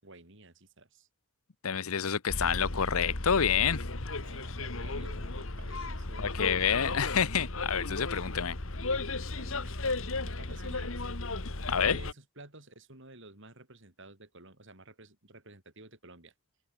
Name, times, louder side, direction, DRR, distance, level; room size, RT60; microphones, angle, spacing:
voice 1, 0.0-1.1 4.2-6.6 9.4-9.7 10.2-11.1 11.7-16.3, right 2 dB, 60° right, 5.8 m, -52 dB
voice 2, 1.6-3.8 6.2-8.6 11.7-12.0, left 7 dB, 85° left, 0.9 m, -28 dB
Bus, 2.3-12.1, left 2 dB, 70° left, 2.0 m, -35 dB
open air
head